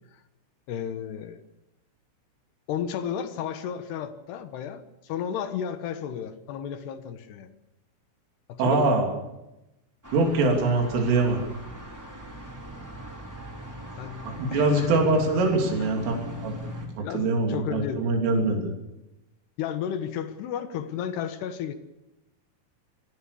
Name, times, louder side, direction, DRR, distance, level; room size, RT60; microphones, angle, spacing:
voice 1, 0.7-1.4 2.7-7.5 8.5-9.0 14.0-14.2 14.5-14.9 17.0-18.0 19.6-21.8, left 8 dB, 70° left, 9 dB, 3.0 m, -33 dB
voice 2, 8.6-9.1 10.1-11.4 14.2-16.5 17.0-18.7, right 3 dB, 80° right, 1 dB, 5.7 m, -23 dB
sound 1, 10.0-16.9, equal, 5° right, 3.8 m, -40 dB
24.0 x 16.0 x 7.0 m, 0.94 s
omnidirectional pair, 5.7 m